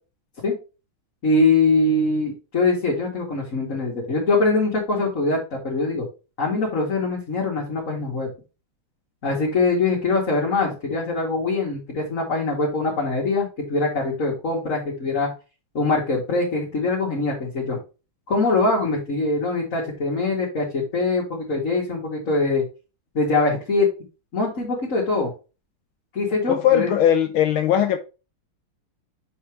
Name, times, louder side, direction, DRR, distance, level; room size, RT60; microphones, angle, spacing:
voice 1, 1.2-6.0 6.4-8.3 9.2-15.3 15.7-17.8 18.3-22.6 23.1-23.9 24.3-25.3 26.1-26.9, left 3 dB, 40° left, 2.2 m, -23 dB
voice 2, 26.5-28.0, left 10 dB, 75° left, 1.5 m, -19 dB
7.1 x 4.8 x 3.1 m
omnidirectional pair, 2.3 m